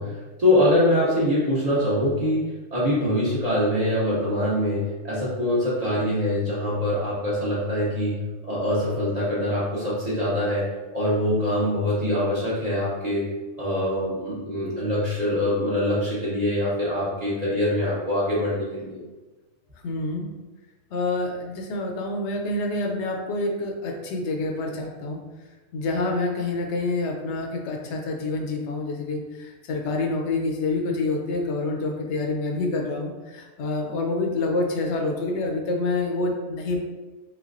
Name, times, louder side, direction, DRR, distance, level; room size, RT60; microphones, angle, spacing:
voice 1, 0.0-10.7 10.9-13.2 13.6-19.0, left 1 dB, 40° right, -9 dB, 0.8 m, -24 dB
voice 2, 19.8-20.3 20.9-25.2 25.7-36.8, left 2 dB, 75° left, 1 dB, 0.9 m, -27 dB
3.2 x 3.1 x 2.5 m, 1.2 s
omnidirectional pair, 1.2 m